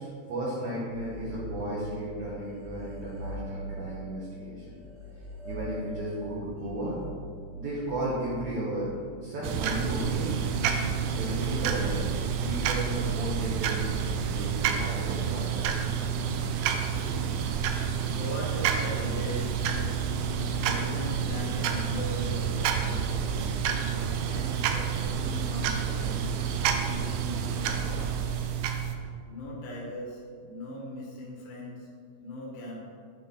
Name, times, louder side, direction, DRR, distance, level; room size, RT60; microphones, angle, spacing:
voice 1, 0.0-4.8 5.4-7.0 7.6-8.9 9.2-10.3 11.1-12.0 12.4-15.9, right 1 dB, 65° right, -7 dB, 2.0 m, -34 dB
sound 1, 0.9-2.0 2.3-8.9, right 1 dB, 35° right, 0.4 m, -42 dB
sound 2, 9.4-29.0, right 7 dB, 85° right, 2.0 m, -29 dB
voice 2, 16.2-16.7 16.9-19.9 20.3-26.4 26.8-28.2 29.2-31.9 32.2-32.8, left 1 dB, 65° left, -5 dB, 3.0 m, -40 dB
9.4 x 5.2 x 4.2 m, 2.2 s
omnidirectional pair, 4.7 m